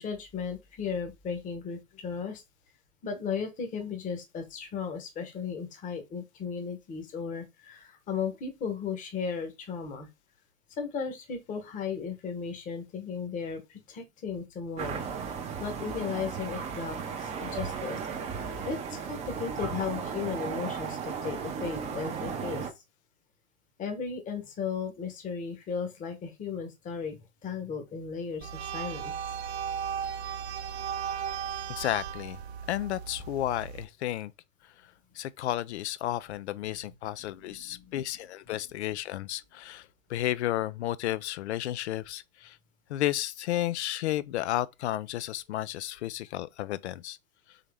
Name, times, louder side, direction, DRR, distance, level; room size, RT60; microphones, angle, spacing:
voice 1, 0.0-2.4 3.0-10.1 10.7-18.0 18.6-22.7 23.8-27.2 27.4-29.1 37.4-37.9, left 6 dB, 20° left, 1.0 m, -36 dB
sound 1, 14.8-22.7, right 6 dB, 15° right, 0.7 m, -35 dB
sound 2, 28.4-33.8, right 8 dB, 55° right, 0.5 m, -36 dB
voice 2, 31.7-32.4 32.7-34.3 35.1-42.6 42.9-47.2, left 13 dB, 55° left, 0.5 m, -32 dB
3.8 x 3.0 x 3.4 m
hypercardioid pair, 115°, 40 cm